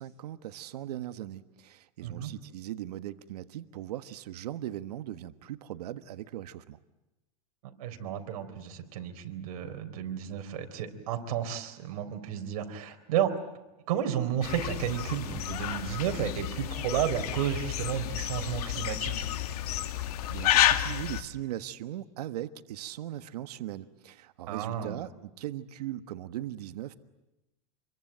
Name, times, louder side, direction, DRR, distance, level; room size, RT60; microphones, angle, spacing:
voice 1, 0.0-6.8 20.3-27.0, right 13 dB, 85° right, 11 dB, 1.4 m, -39 dB
voice 2, 7.8-13.3 13.9-19.2 24.5-25.0, right 10 dB, 65° right, 6 dB, 4.0 m, -32 dB
sound 1, 14.4-21.2, left 12 dB, 75° left, 2.0 m, -30 dB
28.0 x 23.0 x 9.1 m, 1.0 s
supercardioid pair, 160°, 20 cm